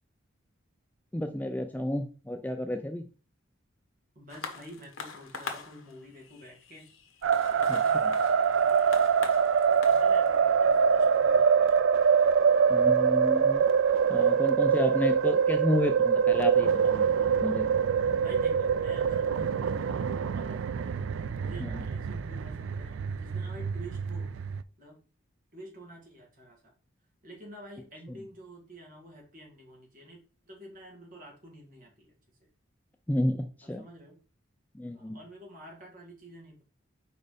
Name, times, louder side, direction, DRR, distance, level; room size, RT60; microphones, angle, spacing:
voice 1, 1.1-3.1 7.7-8.1 12.7-13.6 14.1-17.1 17.4-17.7 21.6-21.8 33.1-33.8 34.7-35.2, left 1 dB, 10° left, 6 dB, 0.4 m, -31 dB
voice 2, 4.2-6.9 7.4-9.3 9.7-11.8 18.2-20.9 21.2-24.3 24.8-25.0 25.5-26.7 27.2-32.1 32.4-32.5 33.8-34.2 34.9-36.6, equal, 45° right, -1 dB, 2.3 m, -49 dB
sound 1, 4.3-13.1 13.9-14.0, left 5 dB, 85° left, 1.2 m, -44 dB
sound 2, 7.2-24.6, right 6 dB, 70° right, 0.4 m, -25 dB
4.9 x 4.3 x 5.1 m, 0.37 s
head